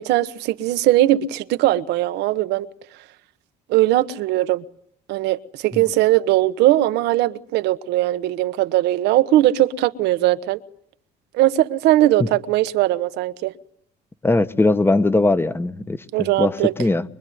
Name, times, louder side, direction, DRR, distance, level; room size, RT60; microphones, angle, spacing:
voice 1, 0.0-2.7 3.7-4.6 5.1-10.6 11.3-13.5 16.1-16.7, right 15 dB, 85° right, 1.2 m, -19 dB
voice 2, 14.2-16.0 16.4-16.5 16.8-17.0, left 2 dB, 15° left, 1.2 m, -19 dB
24.0 x 23.0 x 9.4 m
cardioid pair, 110°, 17 cm